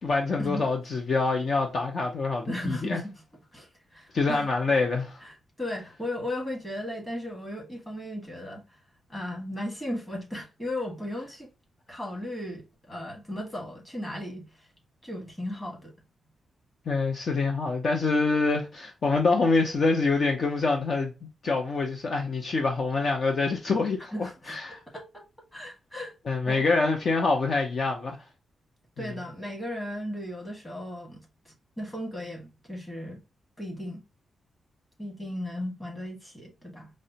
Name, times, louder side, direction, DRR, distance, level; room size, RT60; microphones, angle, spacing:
voice 1, 0.0-3.0 4.1-5.2 16.9-21.1 21.4-24.8 26.3-28.1, left 3 dB, 50° left, 0.6 m, -25 dB
voice 2, 2.5-3.1 3.5-4.5 5.2-8.8 9.1-11.5 11.9-14.7 15.0-15.9 24.1-24.5 24.9-25.3 25.5-26.1 26.5-26.6 29.0-33.2 33.6-34.0 35.0-36.9, left 1 dB, 15° left, 1.4 m, -36 dB
4.7 x 2.1 x 2.7 m
wide cardioid pair, 130°, 0 cm